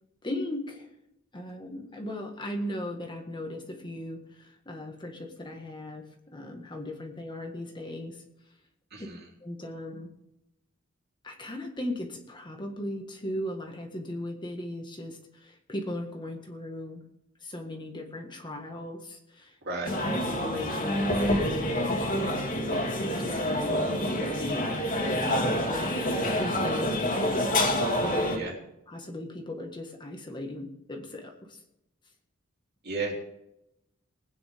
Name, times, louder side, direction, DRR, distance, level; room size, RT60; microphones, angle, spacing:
voice 1, 0.2-0.9 1.3-6.0 6.3-8.2 9.0-9.1 9.4-10.1 11.2-17.0 17.4-19.5 20.3-21.9 22.4-25.9 26.4-27.5 28.0-28.5 28.9-31.6, left 1 dB, 25° left, 3 dB, 1.6 m, -38 dB
voice 2, 8.9-9.3 19.6-20.0 28.3-28.6 32.8-33.1, right 3 dB, 55° right, 0 dB, 3.3 m, -33 dB
sound 1, 19.8-28.4, left 1 dB, 45° left, 2.6 m, -27 dB
21.0 x 9.4 x 3.6 m, 0.86 s
head